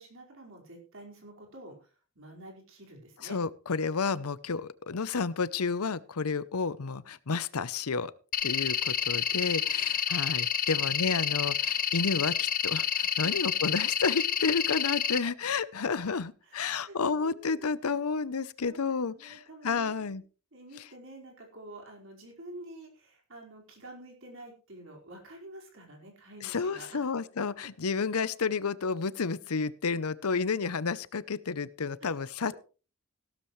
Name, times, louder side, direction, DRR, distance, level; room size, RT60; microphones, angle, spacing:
voice 1, 0.0-1.9 2.1-3.4 10.7-11.1 13.2-13.4 16.5-17.7 18.6-20.1 20.5-27.1 27.4-27.5 32.0-32.1, right 1 dB, 60° right, 1 dB, 4.9 m, -49 dB
voice 2, 3.2-8.1 8.4-20.2 26.4-32.6, left 5 dB, 90° left, 17 dB, 0.7 m, -31 dB
sound 1, 8.3-15.2, left 9 dB, 40° left, 0.8 m, -29 dB
16.0 x 13.0 x 3.2 m, 0.36 s
head